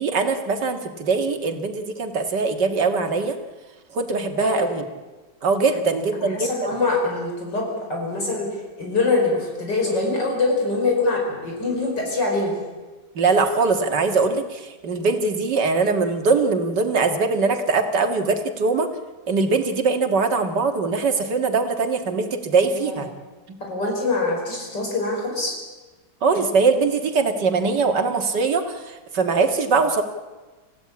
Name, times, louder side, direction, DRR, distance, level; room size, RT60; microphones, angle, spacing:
voice 1, 0.0-3.4 3.9-4.8 5.4-6.5 13.2-18.9 19.3-23.1 23.5-23.6 26.2-30.0, right 4 dB, 80° right, 6 dB, 2.4 m, -22 dB
voice 2, 4.4-4.8 5.7-12.5 22.8-23.0 23.6-25.6, left 3 dB, 85° left, 0 dB, 5.7 m, -24 dB
27.0 x 15.5 x 8.6 m, 1.2 s
omnidirectional pair, 1.8 m